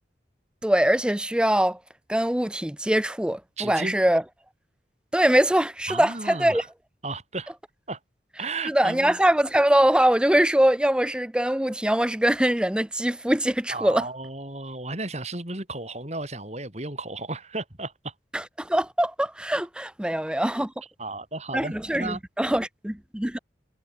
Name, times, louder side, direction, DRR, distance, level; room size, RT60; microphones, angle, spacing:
voice 1, 0.6-1.8 2.1-4.2 5.1-6.6 8.7-14.0 18.3-20.7 21.5-23.4, right 1 dB, 5° right, 0.5 m, -23 dB
voice 2, 3.6-3.9 5.9-6.7 7.0-7.5 7.9-8.0 8.4-9.2 13.7-18.1 21.0-22.2, right 2 dB, 35° right, 3.6 m, -34 dB
head